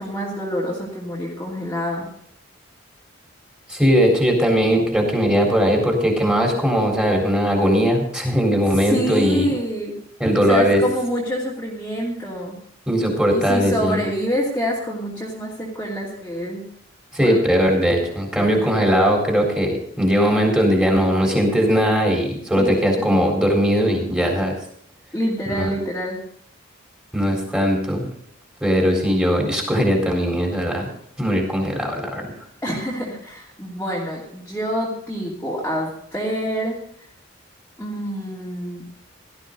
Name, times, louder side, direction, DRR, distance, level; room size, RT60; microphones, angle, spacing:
voice 1, 0.0-2.1 8.8-10.0 10.5-12.6 13.3-16.6 17.2-17.4 18.4-18.7 22.6-23.1 25.1-26.2 32.6-36.8 37.8-38.8, equal, 10° left, -6 dB, 2.8 m, -26 dB
voice 2, 3.7-9.5 10.2-10.8 12.9-14.0 17.1-24.5 25.5-25.7 27.1-28.1 28.6-30.9 31.2-32.3, equal, 5° right, 1 dB, 4.1 m, -19 dB
17.0 x 13.0 x 4.0 m, 0.66 s
head